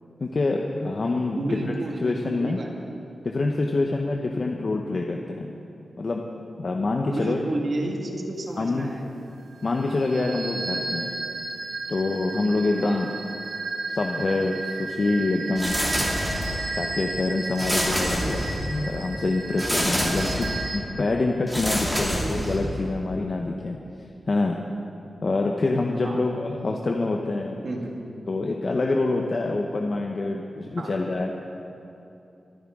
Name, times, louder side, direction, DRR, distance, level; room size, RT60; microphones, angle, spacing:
voice 1, 0.2-1.4 2.0-2.6 3.2-5.5 6.0-6.2 6.6-7.4 7.8-7.9 8.6-8.9 9.6-11.1 11.9-13.1 13.9-15.8 16.8-23.8 24.3-24.6 25.2-27.6 28.3-31.3, left 3 dB, 45° left, 1 dB, 0.8 m, -26 dB
voice 2, 1.4-2.7 7.0-9.1 12.8-13.1 26.0-26.3 27.6-28.0 30.8-31.0, right 2 dB, 60° right, 1 dB, 1.8 m, -31 dB
sound 1, 9.6-20.8, right 3 dB, 90° right, 1.2 m, -34 dB
sound 2, 15.6-16.7 17.6-18.8 19.6-20.6 21.5-22.8, equal, 5° right, 2.4 m, -27 dB
23.5 x 10.0 x 3.7 m, 2.8 s
wide cardioid pair, 110°, 0 cm